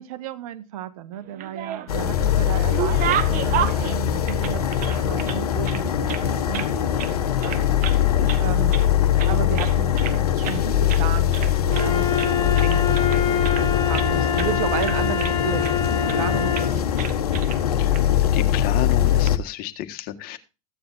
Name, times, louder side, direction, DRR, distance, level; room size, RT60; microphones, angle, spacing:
voice 1, 0.0-7.6 8.4-8.8 9.3-13.4 13.9-15.8 16.1-16.8 17.1-17.2, right 10 dB, 65° right, 11 dB, 1.6 m, -33 dB
sound 1, 1.2-2.1 2.4-5.4 5.6-6.7 7.0-7.2 7.4-8.0 8.3-8.9 9.2-10.2 10.4-10.6 10.9-11.1 11.3-11.9 12.2-14.1 14.4-14.5 14.8-15.7 16.1-16.3 16.5-16.7 17.0-17.6 17.9-18.0 19.0-19.3, right 10 dB, 45° right, 1.5 m, -31 dB
sound 2, 1.9-19.4, left 10 dB, 80° left, 1.1 m, -22 dB
Wind instrument woodwind instrument, 11.7-16.8, left 7 dB, 20° left, 2.3 m, -25 dB
voice 2, 18.3-20.4, left 13 dB, 50° left, 8 dB, 1.6 m, -31 dB
15.0 x 9.5 x 2.7 m, 0.29 s
hypercardioid pair, 85°, 19 cm